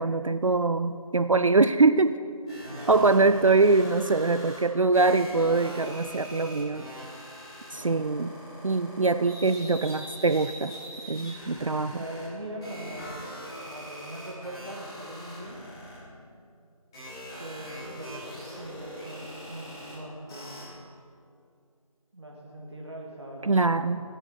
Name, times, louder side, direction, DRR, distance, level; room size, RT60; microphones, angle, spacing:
voice 1, 0.0-2.2 2.9-6.8 7.7-8.3 8.6-10.7 11.1-12.0 23.4-24.0, right 3 dB, 60° right, 12 dB, 0.4 m, -23 dB
sound 1, 2.5-4.6 4.9-12.3 12.6-15.9 16.9-19.9 20.3-20.6, equal, 10° left, 2.3 m, -42 dB
voice 2, 2.7-3.1 7.7-8.2 11.9-13.4 13.7-15.6 17.4-20.7 22.1-23.7, right 1 dB, 45° right, -1 dB, 1.6 m, -41 dB
17.0 x 7.6 x 5.0 m, 2.3 s
figure-of-eight pair, 170°, 19 cm